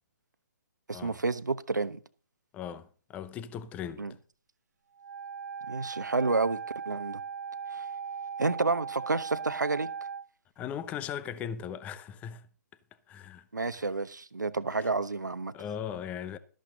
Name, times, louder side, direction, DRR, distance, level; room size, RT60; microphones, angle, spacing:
voice 1, 0.9-2.0 4.0-4.1 5.7-7.2 7.7-7.9 8.4-9.9 13.5-15.5, right 3 dB, 90° right, 1.1 m, -30 dB
voice 2, 2.5-4.0 10.6-12.5 13.1-13.5 13.7-13.9 14.8-14.9 15.5-16.4, left 8 dB, 15° left, 0.7 m, -38 dB
Wind instrument woodwind instrument, 5.0-10.3, right 6 dB, 60° right, 0.6 m, -38 dB
13.0 x 12.0 x 3.9 m
figure-of-eight pair, 140°, 10 cm